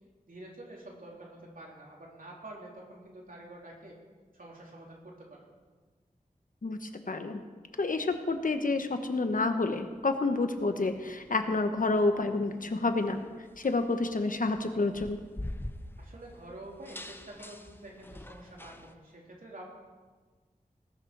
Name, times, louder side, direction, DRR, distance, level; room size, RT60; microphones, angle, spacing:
voice 1, 0.3-4.0 4.3-5.4 16.0-19.6, right 1 dB, 70° right, -2 dB, 3.2 m, -48 dB
voice 2, 6.6-7.4 7.8-13.2 13.6-15.2, left 3 dB, 65° left, 7 dB, 1.1 m, -29 dB
sound 1, 7.7-18.9, left 1 dB, 15° left, 0.8 m, -47 dB
19.5 x 6.7 x 6.0 m, 1.4 s
wide cardioid pair, 70°, 15 cm